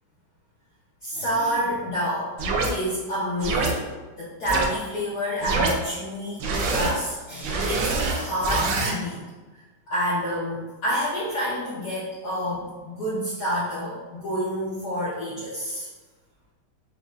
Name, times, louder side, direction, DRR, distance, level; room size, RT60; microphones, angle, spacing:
voice 1, 1.0-2.3 2.7-9.2 9.9-15.9, equal, 60° left, -9 dB, 1.1 m, -28 dB
sound 1, 2.4-2.7 3.4-3.7 4.5-4.7 5.4-5.7 6.4-6.9 7.4-8.9, right 3 dB, 75° right, 1.1 m, -25 dB
5.2 x 2.3 x 2.4 m, 1.2 s
omnidirectional pair, 2.4 m